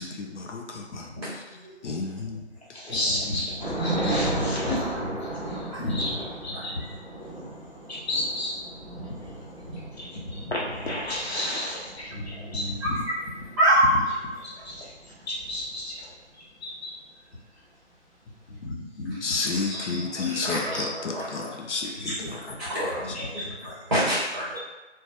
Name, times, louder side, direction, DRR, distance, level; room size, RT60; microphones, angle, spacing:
voice 1, 0.0-1.1 1.8-2.4 2.9-3.0 19.2-22.4, left 4 dB, 80° left, 1 dB, 0.5 m, -31 dB
voice 2, 1.2-2.0 5.7-5.8 6.5-6.6 12.8-13.1 13.6-14.0 19.5-21.6 22.0-22.1 22.6-24.6, equal, 25° right, -10 dB, 0.7 m, -27 dB
voice 3, 2.5-7.0 7.9-8.6 8.9-9.0 9.9-12.9 13.9-14.0 14.4-16.9 18.5-19.2 21.9-22.6 23.0-23.5, left 1 dB, 65° left, -4 dB, 0.9 m, -33 dB
Thunder / Rain, 3.6-16.1, right 1 dB, 40° left, 0.9 m, -34 dB
2.2 x 2.0 x 2.8 m, 1.1 s
figure-of-eight pair, 155°, 35 cm